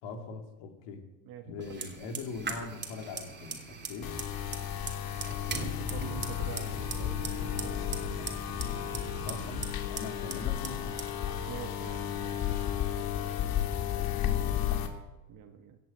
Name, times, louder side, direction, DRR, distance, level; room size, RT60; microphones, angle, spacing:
voice 1, 0.0-1.0 1.4-4.1 9.2-11.0 13.9-14.8, left 4 dB, 65° left, 3 dB, 3.2 m, -42 dB
voice 2, 1.2-1.9 5.5-7.8 11.5-12.7 15.3-15.8, right 8 dB, 45° right, 5 dB, 1.7 m, -45 dB
Fire, 1.6-13.4, right 3 dB, 20° right, 3.0 m, -41 dB
sound 1, 4.0-14.9, left 11 dB, 50° left, 2.6 m, -33 dB
15.5 x 7.7 x 9.1 m, 1.0 s
hypercardioid pair, 85°, 46 cm